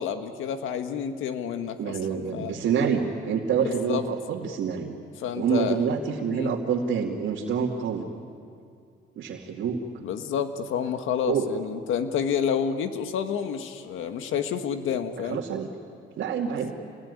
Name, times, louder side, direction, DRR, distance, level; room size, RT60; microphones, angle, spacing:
voice 1, 0.0-2.6 3.6-4.1 5.2-5.8 6.3-6.5 10.0-15.4 16.6-16.7, left 7 dB, 85° left, 8 dB, 1.7 m, -29 dB
voice 2, 1.8-5.0 5.4-8.1 9.2-9.8 11.3-11.5 15.2-15.7 16.2-16.7, right 7 dB, 75° right, -3 dB, 2.4 m, -27 dB
28.5 x 20.5 x 9.7 m, 2.4 s
cardioid pair, 90°, 20 cm